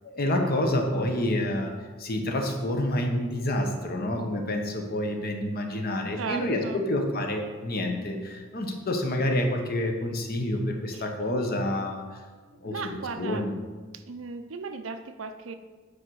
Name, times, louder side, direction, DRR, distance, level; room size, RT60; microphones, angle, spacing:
voice 1, 0.0-1.7 2.0-12.0 12.6-13.5, left 1 dB, 50° left, 3 dB, 1.0 m, -28 dB
voice 2, 6.2-6.8 10.9-11.0 12.6-13.5 13.9-15.5, right 4 dB, 90° right, 9 dB, 0.6 m, -36 dB
8.6 x 5.0 x 4.7 m, 1.4 s
head